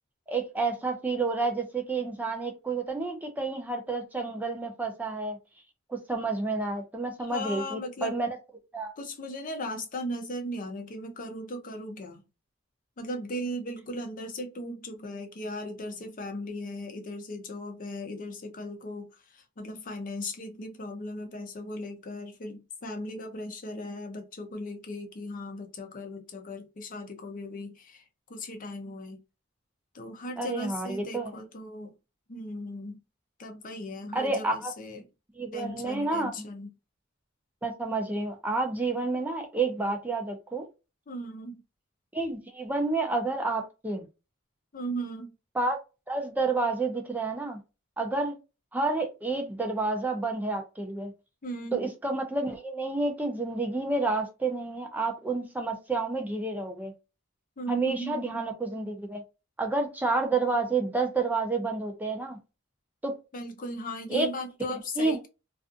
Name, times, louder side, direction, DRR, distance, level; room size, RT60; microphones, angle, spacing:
voice 1, 0.3-5.4 5.9-8.4 8.7-8.9 30.4-31.3 34.1-34.7 35.4-36.4 37.6-40.7 42.1-44.1 45.5-45.8 46.1-47.6 48.0-48.4 48.7-51.1 51.7-56.9 57.7-59.2 59.6-62.4 63.0-63.1 64.1-64.3 64.7-65.2, right 3 dB, 10° right, 0.4 m, -29 dB
voice 2, 7.3-8.2 9.0-12.2 13.0-29.2 29.9-31.9 32.3-33.0 33.4-35.1 35.5-36.7 41.1-41.6 44.7-45.3 51.4-51.8 57.6-58.5 63.3-65.3, equal, 40° left, 0.5 m, -37 dB
2.4 x 2.4 x 2.4 m
head